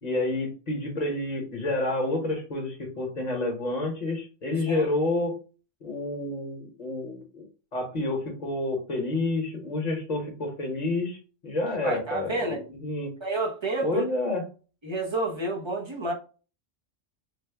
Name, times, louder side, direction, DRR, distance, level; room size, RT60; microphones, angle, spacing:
voice 1, 0.0-5.3 5.8-7.4 7.7-11.2 11.4-13.1 13.8-14.4, left 2 dB, 40° left, 1.0 m, -29 dB
voice 2, 11.8-12.6 13.2-14.0 14.8-16.1, right 2 dB, 30° right, 0.6 m, -30 dB
3.4 x 2.2 x 3.3 m
omnidirectional pair, 1.2 m